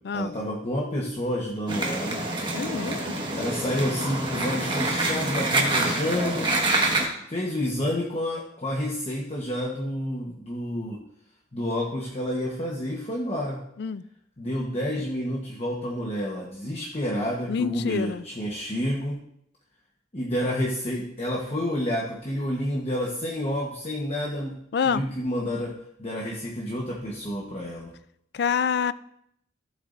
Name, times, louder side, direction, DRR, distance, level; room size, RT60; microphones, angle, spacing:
voice 1, 0.1-2.2 3.3-6.5 7.3-11.0 11.5-13.6 14.4-19.2 20.1-24.6 24.9-25.7 26.0-27.9, equal, 30° left, -3 dB, 1.1 m, -29 dB
sound 1, 1.7-7.0, right 2 dB, 25° right, 1.5 m, -26 dB
voice 2, 2.5-3.2 13.8-14.0 17.5-18.2 24.7-25.0 28.3-28.9, left 6 dB, 60° left, 16 dB, 0.4 m, -27 dB
14.5 x 8.0 x 2.6 m, 0.74 s
head